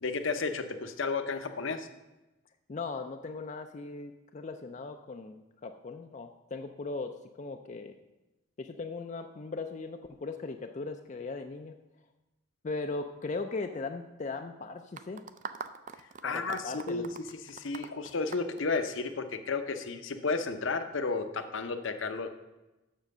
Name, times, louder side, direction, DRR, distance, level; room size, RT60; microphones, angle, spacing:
voice 1, 0.0-1.9 16.2-17.1 17.5-22.3, left 4 dB, 65° left, 8 dB, 0.7 m, -32 dB
voice 2, 2.7-8.0 8.6-11.7 12.6-15.2 16.2-17.1, left 3 dB, 35° left, 6 dB, 0.4 m, -38 dB
sound 1, 15.0-19.4, right 6 dB, 35° right, 0.4 m, -43 dB
7.2 x 6.3 x 6.5 m, 1.0 s
head